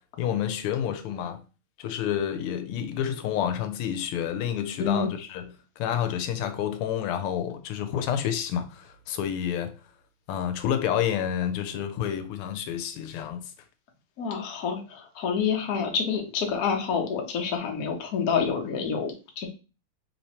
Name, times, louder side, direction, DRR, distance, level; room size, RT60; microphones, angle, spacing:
voice 1, 0.2-1.4 1.8-5.5 5.8-9.8 10.3-13.5, left 9 dB, 85° left, 1.5 m, -29 dB
voice 2, 14.2-19.5, left 6 dB, 55° left, 1.1 m, -28 dB
3.4 x 3.0 x 4.2 m
omnidirectional pair, 2.4 m